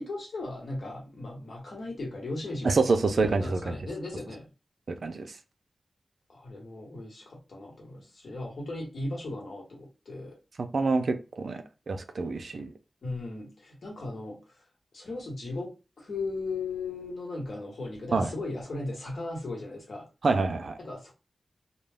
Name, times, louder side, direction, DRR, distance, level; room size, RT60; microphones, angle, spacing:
voice 1, 0.0-4.4 6.3-10.4 13.0-14.6 14.9-20.1 20.8-21.1, left 2 dB, 75° left, 1.2 m, -37 dB
voice 2, 2.6-3.7 5.0-5.2 10.6-12.7 18.1-18.3 20.2-20.8, right 3 dB, 70° right, 0.4 m, -26 dB
2.2 x 2.2 x 3.4 m
wide cardioid pair, 115°, 0 cm